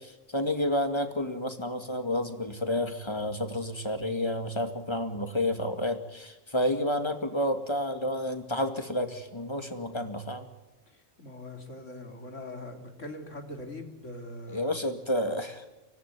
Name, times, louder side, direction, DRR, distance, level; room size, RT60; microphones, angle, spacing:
voice 1, 0.0-10.5 14.5-15.6, left 1 dB, 20° left, 8 dB, 2.3 m, -30 dB
voice 2, 10.9-14.7, left 1 dB, 75° left, 5 dB, 3.6 m, -42 dB
25.0 x 17.5 x 9.7 m, 1.1 s
omnidirectional pair, 1.3 m